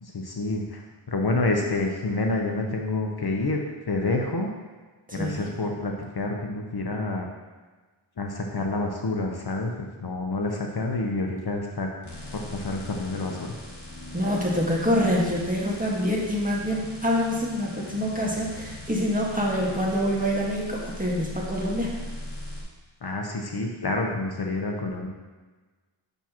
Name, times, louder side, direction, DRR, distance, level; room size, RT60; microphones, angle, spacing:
voice 1, 0.0-0.8 1.1-4.5 5.1-7.3 8.2-9.7 10.0-11.9 12.3-13.4 23.0-25.1, left 2 dB, 50° left, 1 dB, 0.9 m, -28 dB
voice 2, 5.1-5.5 14.1-21.9, equal, 15° right, -4 dB, 1.7 m, -26 dB
sound 1, 12.0-22.6, left 1 dB, 35° left, 2.3 m, -40 dB
8.0 x 6.1 x 3.0 m, 1.3 s
wide cardioid pair, 55°, 48 cm